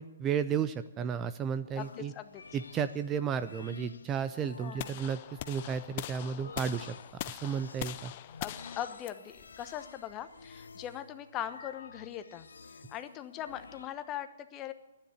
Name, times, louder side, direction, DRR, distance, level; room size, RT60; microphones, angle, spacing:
voice 1, 0.0-2.1 2.5-7.0 7.3-8.1, right 7 dB, 20° right, 12 dB, 0.5 m, -33 dB
voice 2, 1.7-2.4 4.6-5.0 8.4-12.4 12.9-14.7, left 11 dB, 25° left, 10 dB, 1.0 m, -40 dB
sound 1, 1.8-13.9, left 5 dB, 90° left, 0.8 m, -51 dB
sound 2, 4.8-10.9, left 14 dB, 40° left, 0.6 m, -43 dB
12.0 x 10.0 x 9.3 m, 1.0 s
hypercardioid pair, 145°, 0 cm